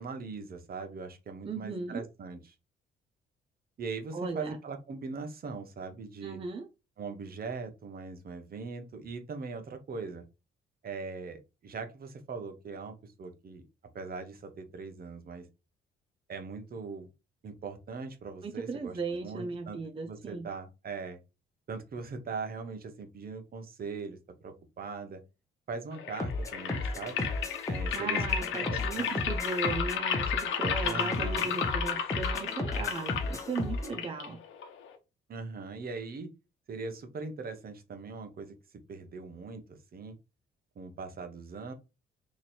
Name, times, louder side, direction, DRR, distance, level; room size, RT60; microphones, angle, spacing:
voice 1, 0.0-2.4 3.8-6.4 7.0-10.2 10.8-13.6 13.9-15.5 16.3-17.1 17.4-19.8 20.1-21.2 21.7-24.2 24.4-25.2 25.7-27.3 27.7-29.1 30.8-31.5 35.3-36.3 36.7-38.5 38.9-40.1 40.8-41.7, right 4 dB, 50° right, 0.9 m, -40 dB
voice 2, 1.4-2.1 4.1-4.6 6.2-6.7 18.4-20.5 27.9-34.4, right 4 dB, 25° right, 0.5 m, -37 dB
sound 1, 25.9-35.0, left 8 dB, 75° left, 0.8 m, -33 dB
sound 2, 26.2-34.0, left 2 dB, 15° left, 0.8 m, -35 dB
3.1 x 2.6 x 4.2 m
cardioid pair, 90°, 20 cm